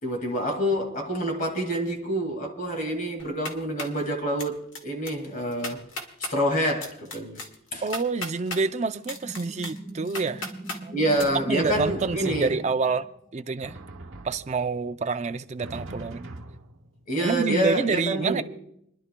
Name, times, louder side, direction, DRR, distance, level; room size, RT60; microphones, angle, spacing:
voice 1, 0.0-5.8 6.3-7.4 7.7-7.8 10.9-12.6 17.1-18.4, right 1 dB, 40° left, 2.2 m, -27 dB
sound 1, 3.2-4.0 4.4-4.8 5.1-5.2 5.5-6.3 6.8-8.6 9.0-10.8 11.2-11.3, left 2 dB, 65° left, 1.6 m, -36 dB
voice 2, 7.8-10.5 10.8-11.0 11.5-13.1 13.3-13.8 14.2-16.2 17.2-18.4, right 4 dB, 30° right, 0.4 m, -27 dB
sound 2, 9.0-13.4, right 1 dB, 5° left, 1.1 m, -41 dB
Drum, 11.2-13.0 13.6-14.9 15.6-17.1, right 2 dB, 70° right, 1.3 m, -42 dB
30.0 x 11.0 x 2.2 m
head